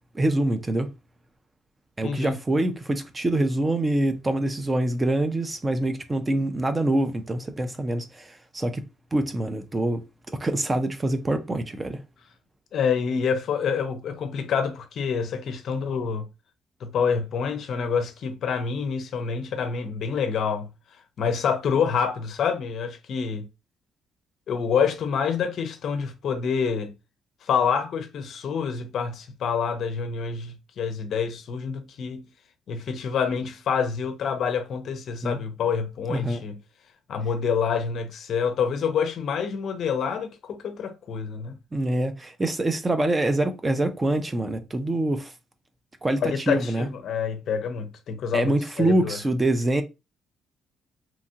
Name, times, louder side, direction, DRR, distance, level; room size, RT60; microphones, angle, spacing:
voice 1, 0.1-0.9 2.0-10.0 10.3-12.0 35.2-35.4 36.1-36.4 41.7-45.3 46.0-46.9 48.3-49.8, right 1 dB, 15° right, 0.4 m, -25 dB
voice 2, 2.0-2.4 12.7-16.3 16.8-20.7 21.2-23.5 24.5-26.9 27.4-32.3 32.7-36.6 37.1-41.6 46.2-49.2, left 6 dB, 55° left, 0.5 m, -27 dB
2.8 x 2.3 x 2.7 m
cardioid pair, 140°, 0 cm